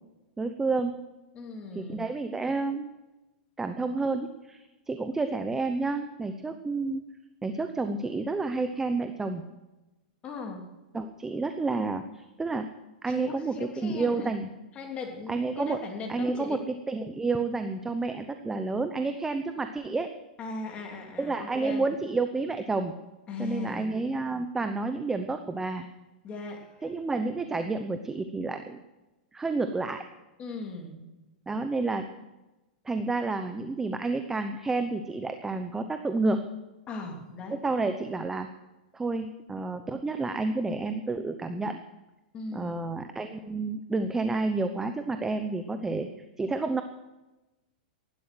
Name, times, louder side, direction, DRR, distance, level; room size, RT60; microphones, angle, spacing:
voice 1, 0.4-1.0 1.7-2.9 3.6-7.0 7.4-9.4 10.9-12.7 13.0-14.5 15.3-15.8 16.1-16.6 16.9-20.1 21.2-22.9 23.4-25.9 26.8-28.8 29.3-30.0 31.5-32.1 32.8-36.4 37.5-38.5 38.9-41.8 42.5-46.1 46.4-46.8, right 3 dB, 10° right, 8 dB, 0.8 m, -30 dB
voice 2, 1.3-2.0 10.2-10.7 13.1-14.3 14.7-16.6 20.4-21.9 23.3-23.9 26.2-26.8 30.4-31.1 36.9-37.7 42.3-42.8, left 3 dB, 25° left, 1 dB, 3.2 m, -38 dB
15.5 x 11.5 x 6.2 m, 1.0 s
hypercardioid pair, 140°, 5 cm